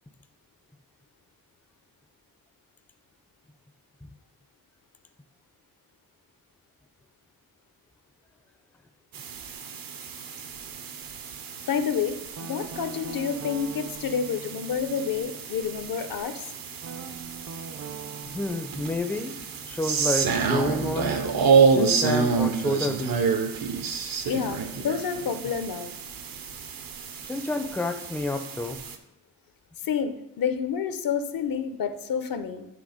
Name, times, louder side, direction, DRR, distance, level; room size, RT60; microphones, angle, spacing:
sound 1, 9.1-29.0, right 5 dB, 75° right, 0.8 m, -28 dB
voice 1, 11.7-16.5 24.3-25.9 29.8-32.7, left 7 dB, 70° left, 9 dB, 0.7 m, -29 dB
Guitar, 12.4-16.1 16.8-21.5, right 6 dB, 45° right, 0.5 m, -44 dB
voice 2, 18.3-19.4 19.6-21.2 21.7-23.3 27.2-28.8, left 2 dB, 5° left, 7 dB, 0.4 m, -30 dB
9.7 x 3.3 x 4.9 m, 0.85 s
wide cardioid pair, 130°, 35 cm